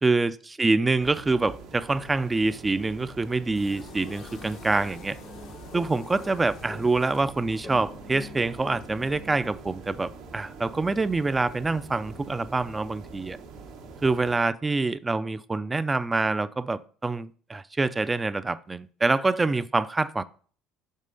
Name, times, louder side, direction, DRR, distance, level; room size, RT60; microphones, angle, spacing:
voice 1, 0.0-5.2 5.7-13.4 14.0-20.2, right 3 dB, 20° right, 0.4 m, -26 dB
sound 1, 1.0-14.4, right 4 dB, 75° right, 1.2 m, -45 dB
sound 2, 3.5-7.8, left 8 dB, 65° left, 0.7 m, -48 dB
sound 3, 4.0-9.5, left 3 dB, 25° left, 0.7 m, -46 dB
5.4 x 3.7 x 5.2 m
supercardioid pair, 90°, 0 cm